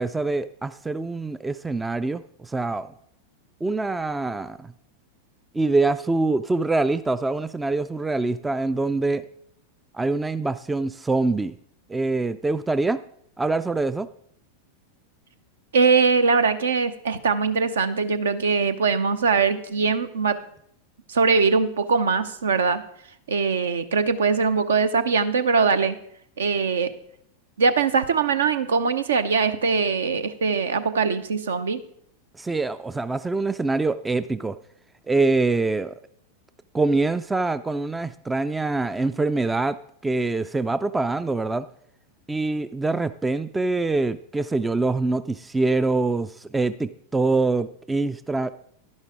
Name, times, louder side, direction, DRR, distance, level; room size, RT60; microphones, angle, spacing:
voice 1, 0.0-2.9 3.6-4.7 5.5-9.2 9.9-11.6 11.9-13.0 13.4-14.1 32.4-34.6 35.1-35.9 36.7-39.8 40.0-41.7 42.3-48.5, right 3 dB, 10° right, 14 dB, 0.3 m, -24 dB
voice 2, 15.7-20.4 21.1-22.8 23.3-26.0 26.4-26.9 27.6-31.8, right 5 dB, 65° right, 12 dB, 0.7 m, -21 dB
11.5 x 10.5 x 3.7 m, 0.69 s
figure-of-eight pair, 90°, 0 cm